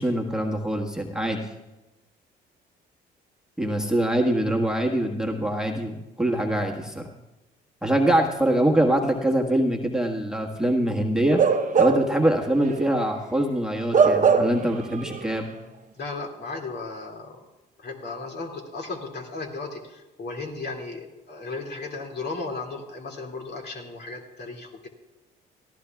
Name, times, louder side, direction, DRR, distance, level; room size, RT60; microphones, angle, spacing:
voice 1, 0.0-1.4 3.6-7.1 7.8-11.4 11.8-15.5, right 1 dB, 5° right, 1 dB, 1.5 m, -24 dB
Bark / Livestock farm animals working animals, 11.3-12.2 12.6-12.8 13.9-14.7 15.1-15.2, right 5 dB, 35° right, 0.9 m, -20 dB
voice 2, 16.0-17.5 17.8-24.9, left 3 dB, 50° left, 1 dB, 2.5 m, -35 dB
18.0 x 14.0 x 2.4 m, 1.0 s
supercardioid pair, 65°, 21 cm